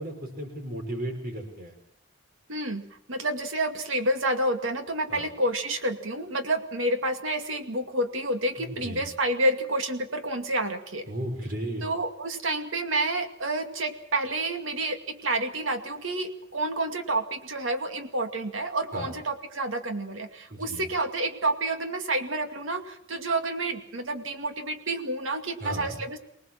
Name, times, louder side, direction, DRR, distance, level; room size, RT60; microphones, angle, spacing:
voice 1, 0.0-1.7 5.1-5.2 8.6-9.0 11.1-11.8 18.9-19.1 20.5-20.9 25.6-26.0, right 1 dB, 45° right, 3 dB, 5.8 m, -35 dB
voice 2, 2.5-11.0 11.8-26.2, right 1 dB, 85° right, 7 dB, 2.3 m, -29 dB
24.0 x 19.0 x 7.5 m, 0.72 s
head